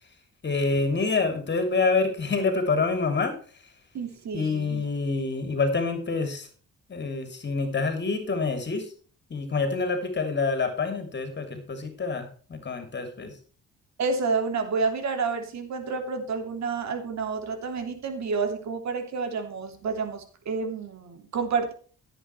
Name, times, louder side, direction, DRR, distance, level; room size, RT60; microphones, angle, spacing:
voice 1, 0.4-3.7 4.3-6.5 6.9-8.9 9.3-13.4, left 4 dB, 35° left, 7 dB, 2.9 m, -27 dB
voice 2, 3.9-4.9 14.0-21.7, right 4 dB, 65° right, 5 dB, 3.1 m, -29 dB
16.0 x 8.3 x 3.2 m, 0.41 s
cardioid pair, 90°, 30 cm